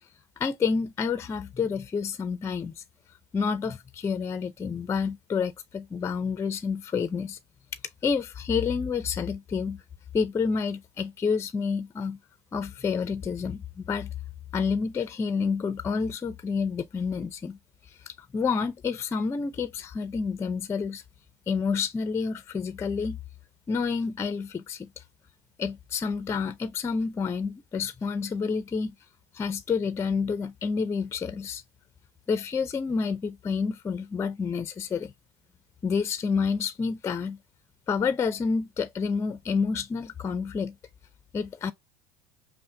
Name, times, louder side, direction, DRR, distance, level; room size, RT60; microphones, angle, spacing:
voice 1, 0.4-2.8 3.3-7.4 8.0-9.8 10.1-12.2 12.5-14.1 14.5-17.6 17.9-21.0 21.5-23.2 23.7-25.0 25.6-28.9 29.3-31.6 32.3-35.1 35.8-37.4 37.9-40.7 41.3-41.7, left 5 dB, 20° left, 0.4 m, -29 dB
5.5 x 2.0 x 2.6 m
hypercardioid pair, 90°, 14 cm